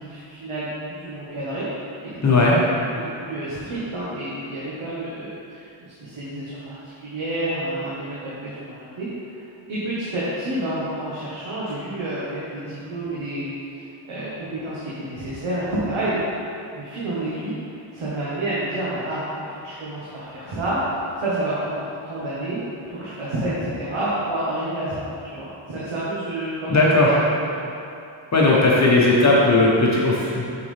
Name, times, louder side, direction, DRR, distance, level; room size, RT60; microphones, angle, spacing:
voice 1, 0.0-1.7 2.0-2.7 2.9-6.8 7.0-9.3 9.7-16.3 16.7-17.5 17.9-20.8 21.2-27.2 27.5-27.8, right 1 dB, 75° right, -9 dB, 1.5 m, -29 dB
voice 2, 2.2-2.6 26.7-27.1 28.3-30.4, left 2 dB, 35° left, -5 dB, 1.0 m, -17 dB
7.0 x 6.3 x 3.4 m, 2.6 s
wide cardioid pair, 130°, 48 cm